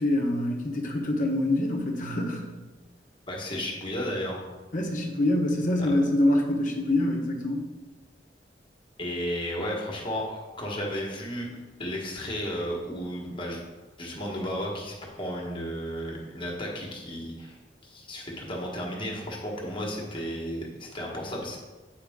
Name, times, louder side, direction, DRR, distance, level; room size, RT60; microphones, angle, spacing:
voice 1, 0.0-2.4 4.7-7.6, left 1 dB, 50° left, 1 dB, 1.0 m, -25 dB
voice 2, 3.3-4.4 9.0-11.5 11.8-13.6 14.0-17.5 17.8-21.6, equal, 30° left, -1 dB, 1.4 m, -33 dB
8.6 x 4.9 x 3.6 m, 1.2 s
head